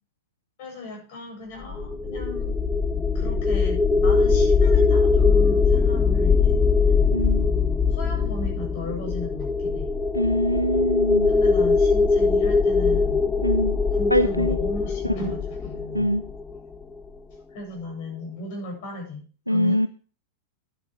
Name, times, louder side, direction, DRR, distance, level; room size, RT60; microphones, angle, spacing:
voice 1, 0.6-2.6 3.1-6.7 7.9-9.9 11.3-13.3 13.9-16.2 17.5-19.8, left 1 dB, 50° left, 2 dB, 7.8 m, -36 dB
sound 1, 1.6-16.7, left 4 dB, 15° left, 0.8 m, -21 dB
voice 2, 7.1-7.5 10.1-11.3 13.4-13.8 14.1-14.6 15.0-15.1 15.9-16.2 19.5-19.9, equal, 90° left, 14 dB, 0.4 m, -23 dB
12.0 x 12.0 x 3.3 m, 0.37 s
figure-of-eight pair, 90°, 0 cm